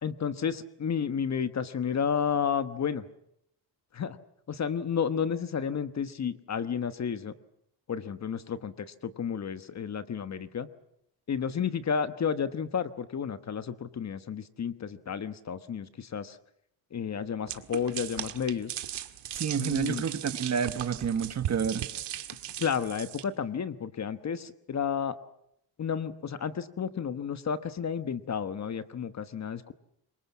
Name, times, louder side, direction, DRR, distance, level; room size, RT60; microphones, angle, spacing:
voice 1, 0.0-3.0 3.9-4.2 4.5-7.3 7.9-10.7 11.3-16.4 16.9-18.8 19.6-20.0 22.6-25.2 25.8-29.7, left 7 dB, 40° left, 12 dB, 1.2 m, -31 dB
sound 1, 17.5-23.2, right 11 dB, 70° right, 1.9 m, -38 dB
voice 2, 19.3-21.9, right 7 dB, 40° right, 10 dB, 1.5 m, -29 dB
26.5 x 23.0 x 7.2 m, 0.75 s
cardioid pair, 140°, 43 cm